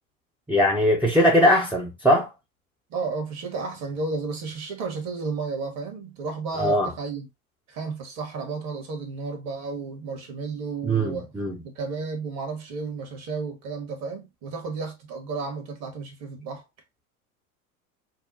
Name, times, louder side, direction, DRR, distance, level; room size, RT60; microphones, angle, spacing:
voice 1, 0.5-2.3 6.5-6.9 10.8-11.6, equal, 5° right, 0.7 m, -20 dB
voice 2, 2.9-7.3 7.7-11.3 11.6-16.6, right 4 dB, 35° right, 1.5 m, -32 dB
5.7 x 2.2 x 2.6 m
figure-of-eight pair, 80°, 43 cm